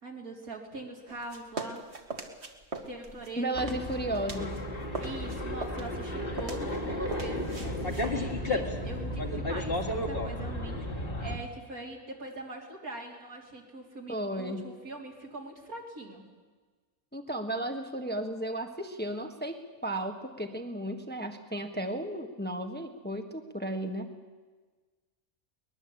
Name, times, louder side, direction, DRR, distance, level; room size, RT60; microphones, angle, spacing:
voice 1, 0.0-1.9 2.9-3.7 5.0-16.2, right 2 dB, 70° right, 1 dB, 3.9 m, -42 dB
sound 1, 1.1-4.6 4.9-9.3, right 3 dB, 45° right, 2.3 m, -41 dB
voice 2, 3.4-4.6 14.1-14.7 17.1-19.6 19.8-24.1, right 1 dB, 5° left, 4 dB, 1.4 m, -34 dB
sound 2, 3.5-11.4, left 1 dB, 35° left, 2.5 m, -33 dB
23.0 x 20.5 x 8.5 m, 1.3 s
omnidirectional pair, 1.6 m